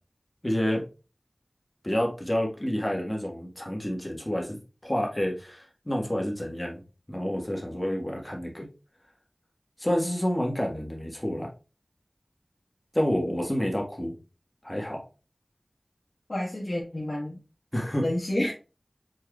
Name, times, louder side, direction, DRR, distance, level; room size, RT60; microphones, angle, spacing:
voice 1, 0.4-0.8 1.8-6.8 7.1-8.7 9.8-11.5 12.9-14.1 14.6-15.0 17.7-18.0, equal, 20° left, 0 dB, 1.4 m, -29 dB
voice 2, 16.3-17.4 18.0-18.5, left 1 dB, 55° left, -5 dB, 1.3 m, -29 dB
4.6 x 4.6 x 2.3 m, 0.33 s
wide cardioid pair, 45°, 0 cm